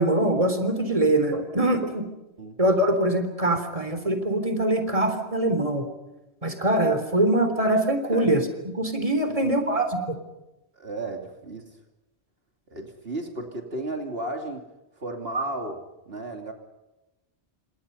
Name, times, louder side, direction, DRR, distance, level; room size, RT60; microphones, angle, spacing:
voice 1, 0.0-2.1 2.6-5.9 6.4-8.4 8.8-10.0, right 1 dB, 30° right, 8 dB, 3.8 m, -23 dB
voice 2, 10.8-11.8 12.7-14.7 15.0-16.5, right 2 dB, 65° right, 3 dB, 3.1 m, -33 dB
29.5 x 27.0 x 5.6 m, 1.0 s
omnidirectional pair, 1.1 m